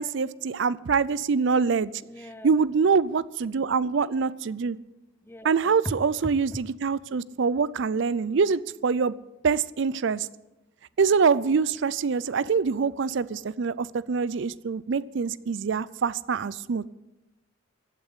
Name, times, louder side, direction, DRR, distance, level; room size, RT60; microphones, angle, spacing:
voice 1, 0.0-1.9 2.4-4.8 5.4-9.2 9.4-10.3 11.0-16.9, right 5 dB, 60° right, 19 dB, 0.4 m, -25 dB
voice 2, 2.0-2.6 5.2-5.9, left 1 dB, 10° left, 12 dB, 0.7 m, -39 dB
15.0 x 8.8 x 9.7 m, 0.98 s
head